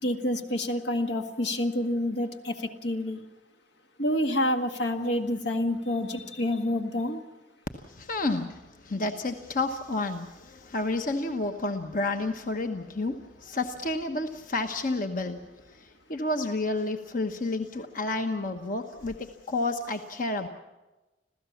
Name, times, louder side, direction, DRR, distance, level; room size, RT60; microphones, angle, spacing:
voice 1, 0.0-3.2 4.0-7.2, left 1 dB, 75° left, 6 dB, 1.8 m, -28 dB
voice 2, 8.0-8.6 8.8-15.4 16.1-19.2 19.5-20.5, left 2 dB, 50° left, 6 dB, 1.1 m, -30 dB
26.5 x 16.0 x 7.2 m, 1.1 s
head